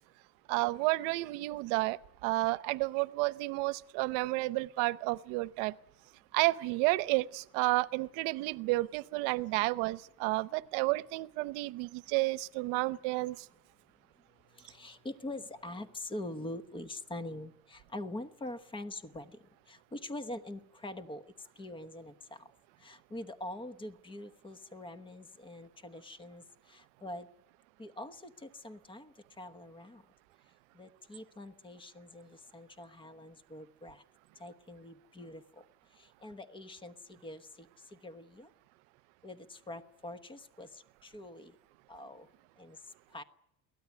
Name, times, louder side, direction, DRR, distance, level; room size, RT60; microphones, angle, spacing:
voice 1, 0.5-5.7 6.3-13.4, right 21 dB, 85° right, 0.8 m, -31 dB
voice 2, 14.5-22.5 22.8-27.3 27.8-30.0 30.7-34.0 34.4-35.6 35.9-38.5 39.2-41.6 41.9-42.3 42.6-43.2, left 1 dB, 15° left, 1.1 m, -44 dB
23.0 x 17.5 x 9.4 m
cardioid pair, 160°, 33 cm